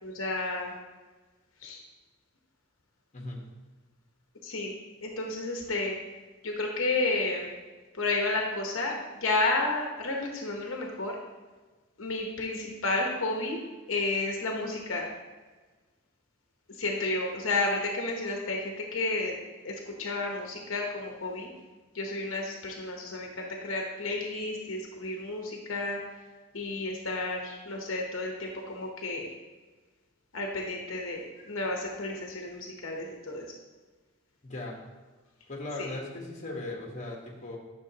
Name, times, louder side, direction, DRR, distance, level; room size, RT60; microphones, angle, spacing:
voice 1, 0.0-0.7 1.6-1.8 4.4-4.7 5.0-6.0 6.4-7.5 7.9-11.2 12.0-13.6 13.9-15.1 16.7-19.3 19.6-21.5 21.9-26.0 26.5-29.3 30.3-33.5 35.8-35.9, left 2 dB, 60° left, 0 dB, 1.0 m, -31 dB
voice 2, 3.1-3.4 34.4-34.8 35.5-37.6, left 2 dB, 30° left, -1 dB, 1.3 m, -38 dB
10.5 x 6.3 x 2.9 m, 1.3 s
head